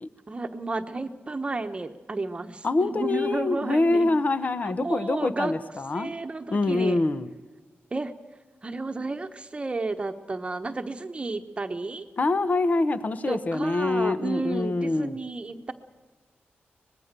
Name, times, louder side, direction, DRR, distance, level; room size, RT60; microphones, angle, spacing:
voice 1, 0.3-4.1 4.6-5.5 5.9-7.0 7.9-8.1 8.6-12.1 13.3-15.7, right 3 dB, 25° right, 7 dB, 1.1 m, -32 dB
voice 2, 2.6-6.1 6.5-7.3 12.2-15.2, left 2 dB, 40° left, 12 dB, 1.0 m, -25 dB
24.0 x 20.5 x 6.8 m, 1.2 s
wide cardioid pair, 150°, 4 cm